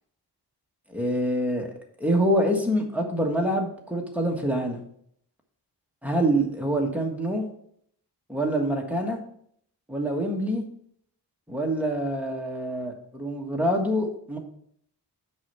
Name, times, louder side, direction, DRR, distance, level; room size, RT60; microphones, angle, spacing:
voice 1, 0.9-1.7 2.0-4.8 6.0-7.4 8.3-9.2 9.9-10.6 11.5-14.4, right 1 dB, 5° right, 0 dB, 1.5 m, -26 dB
6.3 x 5.0 x 5.5 m, 0.66 s
wide cardioid pair, 115°, 42 cm